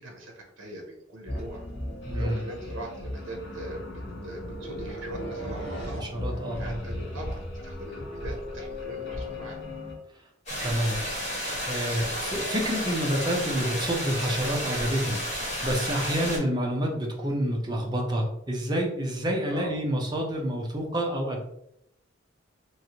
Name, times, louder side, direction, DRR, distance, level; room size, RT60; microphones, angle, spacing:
voice 1, 0.0-1.6 2.1-9.6 19.5-19.8, right 1 dB, 75° right, 1 dB, 0.7 m, -41 dB
sound 1, 1.3-9.9, left 1 dB, 65° left, 0.9 m, -36 dB
voice 2, 2.1-2.4 6.0-6.8 10.6-11.0 11.5-21.4, equal, 20° right, 0 dB, 0.6 m, -28 dB
sound 2, 10.5-16.4, equal, 35° left, 1.4 m, -32 dB
3.1 x 2.5 x 2.8 m, 0.78 s
head